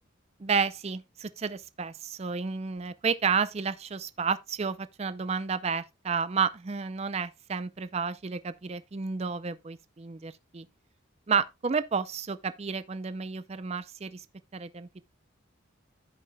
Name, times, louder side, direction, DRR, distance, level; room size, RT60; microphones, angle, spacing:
voice 1, 0.4-10.7 11.3-14.2 14.5-15.0, right 5 dB, 30° right, 0.4 m, -31 dB
15.5 x 5.5 x 2.2 m
head